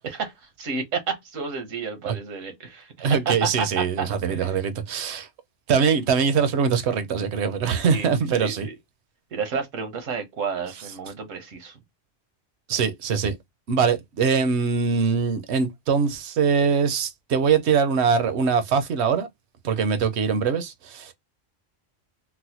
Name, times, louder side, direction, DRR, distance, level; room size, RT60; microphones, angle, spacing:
voice 1, 0.0-4.6 7.7-8.7 9.3-11.8, right 5 dB, 80° right, 1.3 m, -31 dB
voice 2, 3.0-5.3 5.7-8.7 12.7-13.4 13.7-19.3 19.6-21.1, right 6 dB, 65° right, 0.9 m, -22 dB
4.0 x 2.1 x 2.8 m
omnidirectional pair, 1.3 m